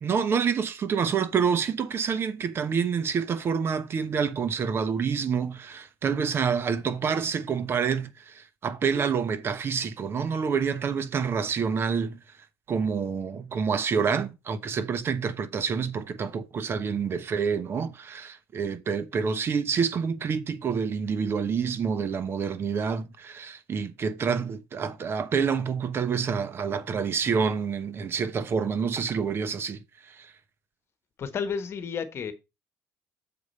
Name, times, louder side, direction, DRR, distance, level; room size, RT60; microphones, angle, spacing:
voice 1, 0.0-12.2 12.7-30.3, right 6 dB, 40° right, 1.0 m, -28 dB
voice 2, 31.2-32.3, left 6 dB, 40° left, 1.3 m, -31 dB
7.1 x 4.8 x 5.4 m
cardioid pair, 115°, 6 cm